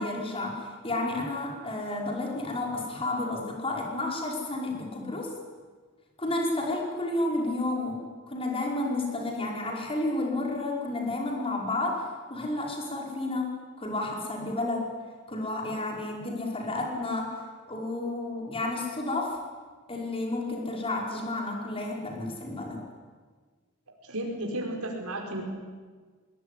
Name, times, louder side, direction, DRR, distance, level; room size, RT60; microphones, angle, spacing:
voice 1, 0.0-5.3 6.2-8.0 8.3-13.5 13.8-14.9 15.3-17.4 17.7-19.4 19.9-22.8, left 2 dB, 25° left, 0 dB, 5.3 m, -31 dB
voice 2, 24.0-25.4, right 1 dB, 85° right, 1 dB, 5.0 m, -33 dB
21.5 x 19.5 x 10.0 m, 1.5 s
head